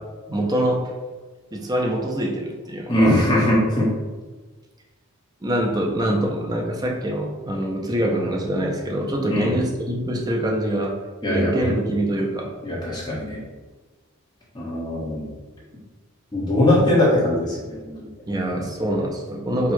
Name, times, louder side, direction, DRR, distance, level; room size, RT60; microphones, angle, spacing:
voice 1, 0.3-0.9 1.5-3.2 5.4-11.0 11.3-12.5 18.3-19.7, right 1 dB, 20° right, 1 dB, 0.5 m, -24 dB
voice 2, 2.9-3.9 9.3-9.6 11.2-11.7 12.6-13.4 14.5-15.3 16.3-18.1, left 1 dB, 20° left, -6 dB, 1.2 m, -21 dB
4.4 x 2.3 x 4.4 m, 1.3 s
head